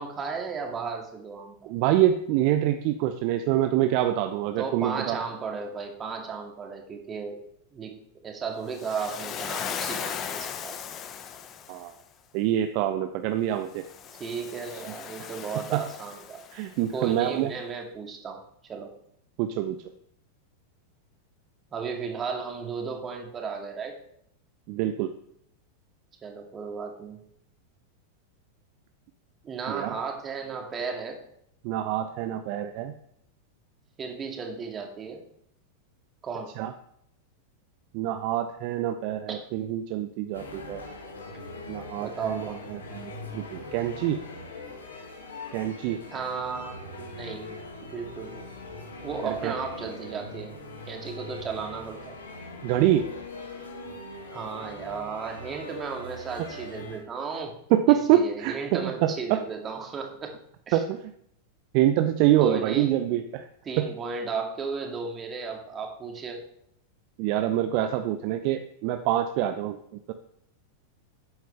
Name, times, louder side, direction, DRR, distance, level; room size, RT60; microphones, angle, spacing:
voice 1, 0.0-1.7 4.6-7.4 7.7-8.0 8.2-10.8 14.1-16.4 16.9-18.9 21.7-24.0 26.2-27.2 29.4-31.2 34.0-35.2 36.2-36.5 39.3-39.5 42.0-42.6 46.1-48.5 49.0-50.6 50.9-52.2 54.3-57.5 57.9-60.4 60.7-60.8 62.4-62.9 63.7-66.4, right 5 dB, 25° right, 2 dB, 2.3 m, -35 dB
voice 2, 1.6-5.2 11.7-11.9 12.3-13.8 15.7-15.8 16.5-17.5 19.4-19.8 24.7-25.1 29.7-29.9 31.6-32.9 36.6-36.7 37.9-40.8 41.7-44.2 45.5-46.0 49.2-49.5 52.6-53.1 56.4-56.5 57.7-59.4 60.7-61.0 61.7-63.5 63.8-63.9 67.2-70.1, right 12 dB, 45° right, 8 dB, 0.7 m, -25 dB
Waves surf, 8.7-11.9 13.7-16.8, left 8 dB, 30° left, 1.0 m, -37 dB
sound 1, 40.3-57.0, left 2 dB, 70° left, 2.3 m, -41 dB
13.0 x 9.1 x 3.4 m, 0.71 s
figure-of-eight pair, 90°, 0 cm